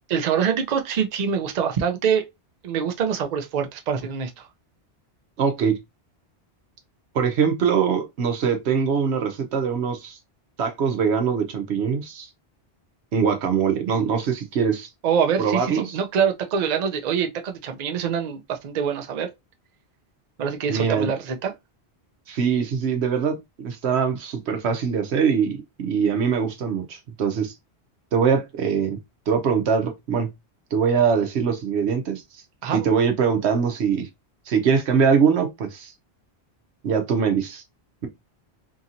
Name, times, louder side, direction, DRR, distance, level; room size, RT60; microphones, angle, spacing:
voice 1, 0.1-2.3 2.6-4.5 15.0-19.3 20.4-21.5 32.6-32.8, right 7 dB, 55° right, 0.5 m, -25 dB
voice 2, 5.4-5.8 7.1-10.2 10.6-12.3 13.1-14.9 15.4-15.9 20.7-21.1 22.3-27.5 28.1-29.0 29.3-30.3 30.7-32.2 32.7-34.1 34.5-35.9 36.8-37.6, right 6 dB, 80° right, 1.0 m, -22 dB
2.8 x 2.8 x 2.5 m
omnidirectional pair, 1.1 m